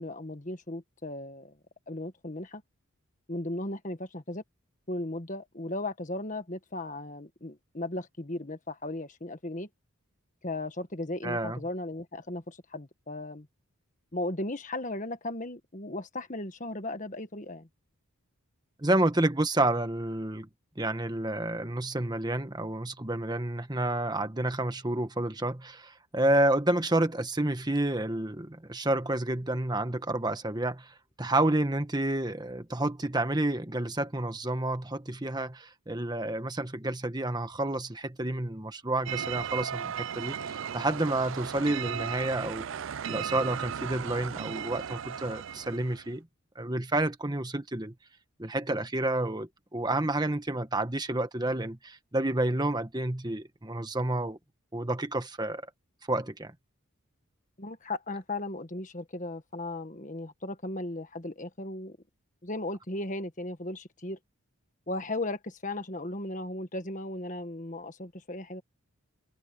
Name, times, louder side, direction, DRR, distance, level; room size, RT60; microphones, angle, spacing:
voice 1, 0.0-1.6 1.9-2.6 3.3-4.4 4.9-9.7 10.4-13.5 14.1-17.7 57.6-62.0 62.4-64.2 64.9-68.6, left 2 dB, 35° left, 1.5 m, -36 dB
voice 2, 11.2-11.6 18.8-20.5 20.8-42.7 43.1-46.3 46.5-47.9 48.4-54.4 54.7-55.6 56.1-56.5, right 1 dB, 20° right, 1.4 m, -29 dB
sound 1, 39.1-46.1, right 8 dB, 60° right, 0.4 m, -36 dB
head